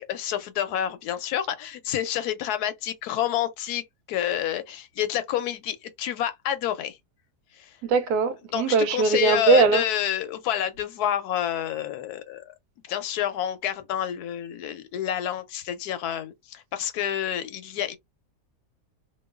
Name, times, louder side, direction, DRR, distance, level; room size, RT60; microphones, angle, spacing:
voice 1, 0.0-7.0 7.5-7.8 8.5-12.4 12.9-18.0, left 11 dB, 80° left, 1.1 m, -28 dB
voice 2, 7.9-9.8, right 4 dB, 80° right, 1.1 m, -20 dB
3.0 x 2.2 x 2.3 m
omnidirectional pair, 1.7 m